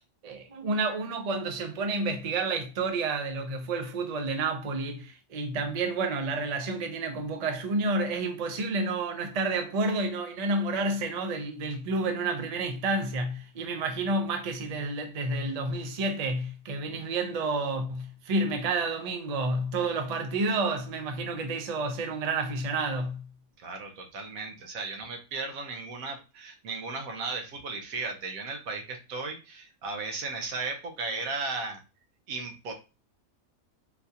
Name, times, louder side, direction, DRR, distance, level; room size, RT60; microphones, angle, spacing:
voice 1, 0.0-23.2, right 3 dB, 50° right, 0.4 m, -30 dB
voice 2, 23.6-31.8 32.3-32.7, right 3 dB, 85° right, 1.2 m, -35 dB
4.0 x 2.4 x 2.7 m
omnidirectional pair, 1.4 m